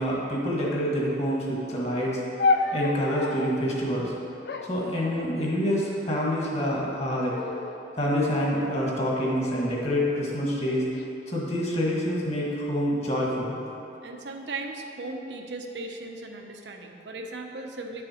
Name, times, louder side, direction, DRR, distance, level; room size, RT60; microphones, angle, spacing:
voice 1, 0.0-2.4 2.7-4.1 4.7-7.4 8.0-10.8 11.3-13.6, equal, 35° left, -4 dB, 1.6 m, -27 dB
sound 1, 2.4-3.6 4.4-5.7 6.4-6.9 7.3-7.9 8.5-9.8 10.6-11.1, left 3 dB, 65° left, 0.5 m, -31 dB
voice 2, 14.0-18.0, right 2 dB, 85° right, 3 dB, 0.8 m, -37 dB
9.9 x 6.6 x 4.3 m, 2.9 s
head